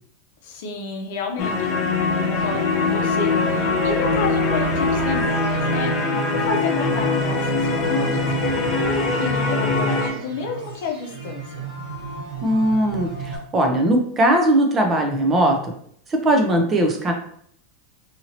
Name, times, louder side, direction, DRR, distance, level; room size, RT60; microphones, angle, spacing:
voice 1, 0.4-1.8 2.2-11.5, left 3 dB, 70° left, 3 dB, 0.6 m, -31 dB
sound 1, 1.4-10.1, left 3 dB, 40° left, 0.8 m, -22 dB
sound 2, 2.3-13.4, right 3 dB, 55° right, 1.2 m, -34 dB
voice 2, 12.4-15.7 16.1-17.1, right 1 dB, 25° right, 3 dB, 0.6 m, -19 dB
2.8 x 2.8 x 2.7 m, 0.64 s
supercardioid pair, 125°, 0 cm